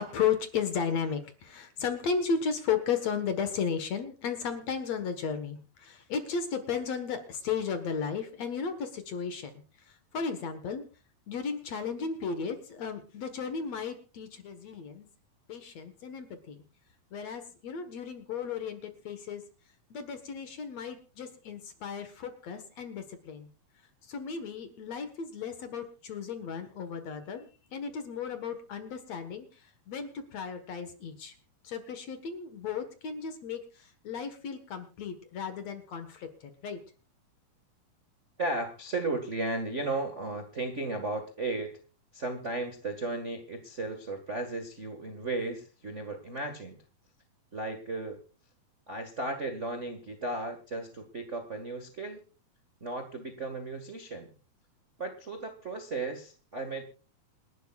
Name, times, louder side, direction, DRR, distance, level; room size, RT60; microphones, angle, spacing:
voice 1, 0.0-10.8 11.3-15.1 15.5-16.6 17.1-19.4 19.9-23.5 24.0-31.3 31.6-36.8, left 6 dB, 55° left, 8 dB, 2.2 m, -34 dB
voice 2, 38.4-41.8 42.1-46.8 47.5-48.2 48.9-52.2 52.8-54.3 55.0-57.0, right 2 dB, 50° right, 4 dB, 0.8 m, -35 dB
27.5 x 11.5 x 2.4 m, 0.34 s
omnidirectional pair, 4.3 m